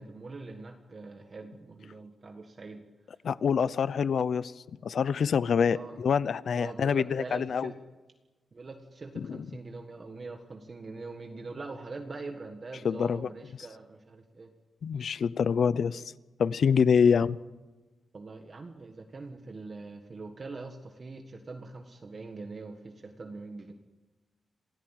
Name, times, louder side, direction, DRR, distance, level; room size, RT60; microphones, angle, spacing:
voice 1, 0.0-2.8 5.7-6.0 6.5-7.8 8.5-14.5 18.1-23.7, right 3 dB, 35° right, 4 dB, 1.6 m, -43 dB
voice 2, 3.2-4.5 4.8-7.7 9.2-9.4 12.8-13.3 14.8-16.1 16.4-17.4, left 6 dB, 65° left, 17 dB, 0.7 m, -26 dB
27.5 x 17.0 x 9.1 m, 1.2 s
wide cardioid pair, 155°, 0 cm